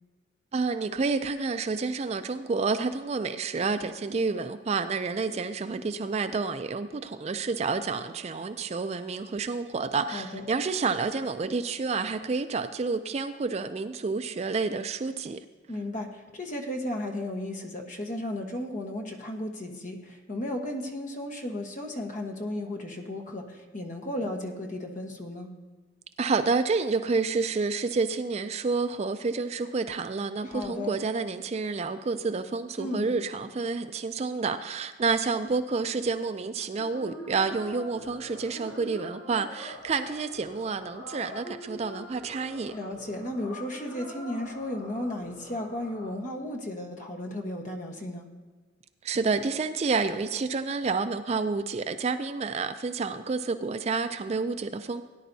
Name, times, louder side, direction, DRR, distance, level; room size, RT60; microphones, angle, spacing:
voice 1, 0.5-15.4 26.2-42.8 49.0-55.0, right 4 dB, 35° right, 10 dB, 0.3 m, -29 dB
voice 2, 10.1-10.4 15.7-25.5 30.5-31.0 32.8-33.1 42.7-48.3, left 1 dB, 40° left, 2 dB, 1.2 m, -34 dB
sound 1, 36.8-46.1, left 1 dB, 60° left, 3.2 m, -44 dB
18.0 x 10.0 x 2.7 m, 1.3 s
head